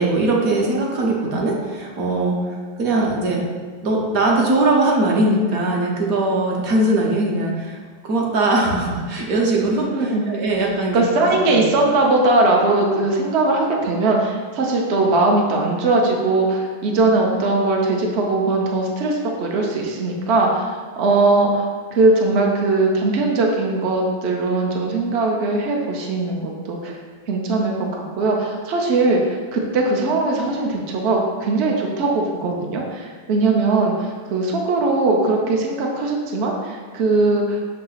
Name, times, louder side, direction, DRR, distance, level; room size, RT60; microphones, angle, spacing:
voice 1, 0.0-3.4 3.8-11.6, right 2 dB, 55° right, -1 dB, 1.1 m, -20 dB
voice 2, 9.8-10.3 10.9-21.7 21.9-27.0 27.3-37.6, right 2 dB, 70° right, 0 dB, 0.6 m, -20 dB
6.6 x 2.8 x 5.6 m, 1.5 s
omnidirectional pair, 2.2 m